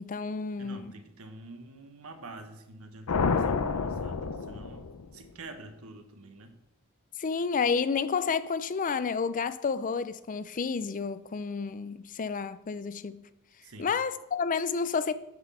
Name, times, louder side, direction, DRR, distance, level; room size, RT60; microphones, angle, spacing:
voice 1, 0.0-0.9 7.2-13.2 13.8-15.1, left 5 dB, 35° left, 0.5 m, -30 dB
voice 2, 0.6-6.6 13.6-14.0, right 2 dB, 70° right, 1.2 m, -47 dB
sound 1, 3.1-5.3, left 5 dB, 90° left, 0.6 m, -29 dB
9.5 x 6.2 x 5.5 m
head